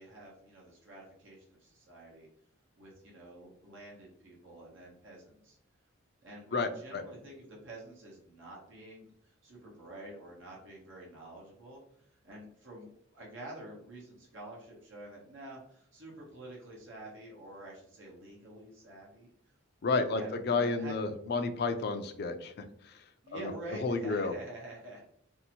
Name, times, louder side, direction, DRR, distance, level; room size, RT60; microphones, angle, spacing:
voice 1, 0.0-2.3 2.8-5.6 6.2-19.3 20.1-21.0 23.2-25.0, right 1 dB, 70° right, -3 dB, 0.9 m, -48 dB
voice 2, 6.5-7.0 19.8-23.0 23.3-23.5 23.8-24.3, left 3 dB, 50° left, 7 dB, 0.3 m, -31 dB
2.7 x 2.5 x 2.8 m, 0.69 s
head